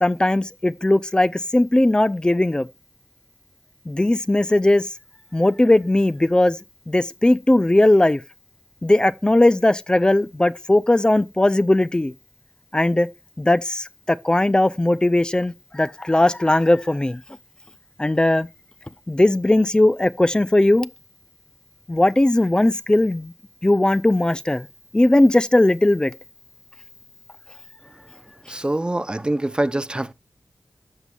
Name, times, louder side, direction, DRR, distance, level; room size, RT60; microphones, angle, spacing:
voice 1, 0.0-2.7 3.9-4.9 5.3-6.6 6.9-8.2 8.8-12.1 12.7-13.1 13.4-17.2 18.0-18.5 19.1-20.9 21.9-23.3 23.6-24.7 24.9-26.1, left 1 dB, 25° left, 0.6 m, -18 dB
voice 2, 28.5-30.1, right 1 dB, 25° right, 0.7 m, -24 dB
14.5 x 5.4 x 2.4 m
cardioid pair, 40°, 4 cm